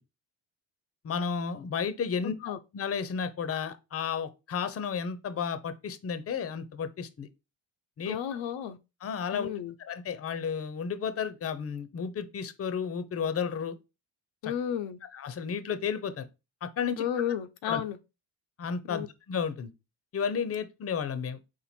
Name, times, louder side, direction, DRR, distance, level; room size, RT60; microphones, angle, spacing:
voice 1, 1.0-2.3 2.7-7.3 8.0-8.2 9.0-9.5 9.8-13.7 14.4-14.5 15.1-16.3 16.6-17.0 17.7-17.8 18.6-19.7 20.1-21.4, left 6 dB, 30° left, 0.6 m, -32 dB
voice 2, 2.2-2.6 8.1-8.8 9.3-9.7 14.4-15.0 17.0-18.0 18.9-19.1, left 9 dB, 70° left, 0.6 m, -32 dB
4.4 x 2.5 x 4.2 m
supercardioid pair, 75°, 49 cm